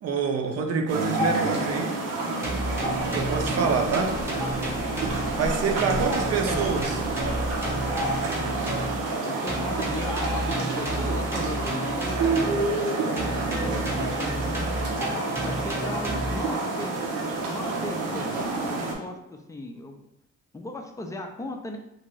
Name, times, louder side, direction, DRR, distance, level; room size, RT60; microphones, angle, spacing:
voice 1, 0.0-1.9 3.1-4.2 5.3-7.0, right 5 dB, 55° right, 4 dB, 0.6 m, -26 dB
sound 1, 0.9-18.9, right 3 dB, 85° right, 0.7 m, -28 dB
sound 2, 2.4-5.5 5.8-9.1 9.5-12.8 13.2-16.5, right 1 dB, 10° right, 0.8 m, -32 dB
sound 3, 2.8-8.3, left 1 dB, 80° left, 0.5 m, -40 dB
voice 2, 4.4-4.9 5.2-6.1 6.6-7.3 9.2-12.6 13.0-15.1 15.4-17.0 17.3-20.0 20.5-21.8, left 2 dB, 10° left, 4 dB, 0.4 m, -38 dB
2.7 x 2.5 x 3.1 m, 0.82 s
cardioid pair, 90°, 30 cm